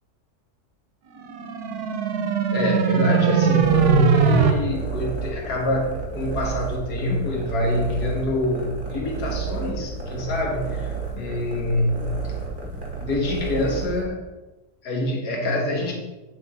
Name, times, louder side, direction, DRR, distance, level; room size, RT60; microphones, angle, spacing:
sound 1, 1.2-4.5, right 8 dB, 75° right, 1.3 m, -20 dB
voice 1, 2.5-12.4 12.6-14.2 14.8-15.9, left 2 dB, 85° left, 0 dB, 1.9 m, -25 dB
sound 2, 3.6-14.0, right 5 dB, 35° right, 1.5 m, -32 dB
10.0 x 5.0 x 4.2 m, 1.1 s
omnidirectional pair, 1.7 m